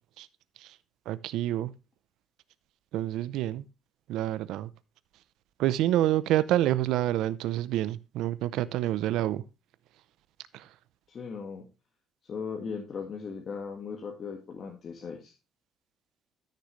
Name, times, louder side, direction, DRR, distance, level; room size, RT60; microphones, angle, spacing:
voice 1, 1.1-1.7 2.9-3.6 4.1-4.7 5.6-9.4 10.5-10.7, right 13 dB, 85° right, 0.6 m, -28 dB
voice 2, 11.1-11.7 12.2-15.3, left 5 dB, 35° left, 1.6 m, -38 dB
13.0 x 6.7 x 3.1 m
cardioid pair, 165°, 0 cm